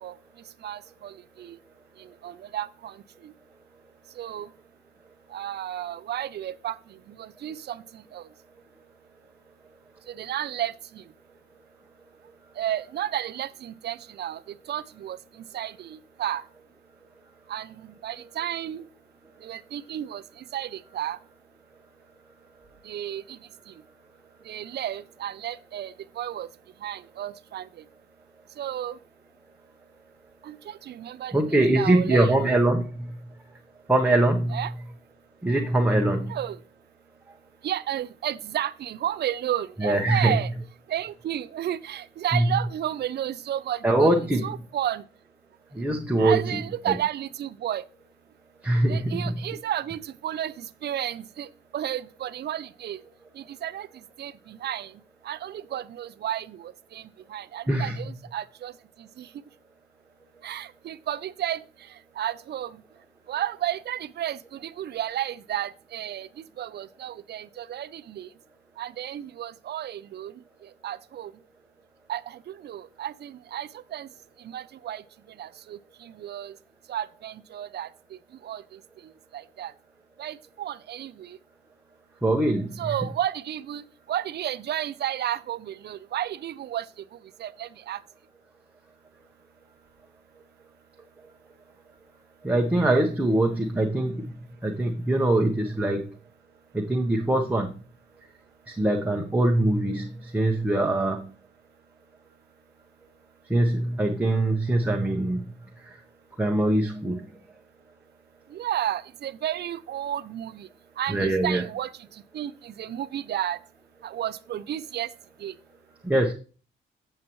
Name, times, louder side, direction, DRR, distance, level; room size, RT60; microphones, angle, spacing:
voice 1, 0.6-1.6 2.0-3.3 4.2-4.5 5.3-8.3 10.1-11.0 12.6-16.4 17.5-18.9 19.4-21.2 22.8-23.4 23.7-23.8 24.4-26.5 26.8-27.8 28.6-29.0 30.4-32.5 34.5-34.7 36.3-36.6 37.6-40.5 40.9-44.1 44.4-45.0 46.2-47.8 48.9-53.0 53.3-53.9 54.2-58.7 59.0-59.3 60.4-62.8 63.3-66.3 66.6-68.3 68.8-70.3 70.6-71.3 72.1-74.1 74.4-75.0 75.4-76.6 76.9-78.8 79.3-79.7 80.2-81.4 82.8-88.0 108.5-110.7 111.0-113.6 114.0-115.1 115.4-115.5, right 11 dB, 55° right, 0.6 m, -33 dB
voice 2, 31.3-32.8 33.9-34.5 35.4-36.3 39.8-40.4 42.3-42.5 43.8-44.5 45.7-46.6 46.9-47.0 48.6-49.3 57.7-58.1 82.2-82.9 92.4-94.2 94.6-96.0 96.7-97.7 98.7-100.1 100.3-101.2 103.5-105.4 106.4-107.2 111.1-111.6 116.0-116.3, right 1 dB, 5° right, 1.1 m, -23 dB
8.5 x 7.5 x 3.1 m
cardioid pair, 90°, 20 cm